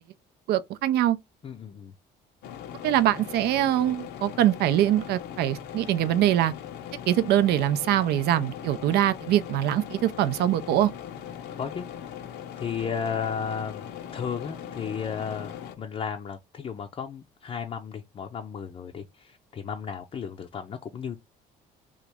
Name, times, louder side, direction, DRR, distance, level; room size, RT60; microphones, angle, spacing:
voice 1, 0.5-1.2 2.8-6.5 7.1-10.9, right 12 dB, 70° right, 0.4 m, -23 dB
voice 2, 1.4-1.9 11.6-11.9 12.6-21.2, left 7 dB, 35° left, 0.5 m, -34 dB
sound 1, 2.4-15.8, left 9 dB, 75° left, 0.6 m, -40 dB
3.1 x 2.4 x 3.3 m
cardioid pair, 110°, 17 cm